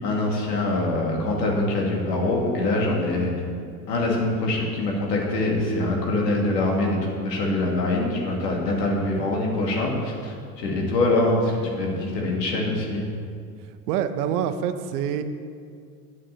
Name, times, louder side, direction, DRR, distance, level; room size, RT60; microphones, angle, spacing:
voice 1, 0.0-3.3 3.9-13.0, left 2 dB, 90° left, -1 dB, 2.6 m, -24 dB
voice 2, 13.9-15.2, right 9 dB, 70° right, 10 dB, 1.0 m, -26 dB
8.8 x 8.5 x 6.9 m, 2.3 s
hypercardioid pair, 85°, 48 cm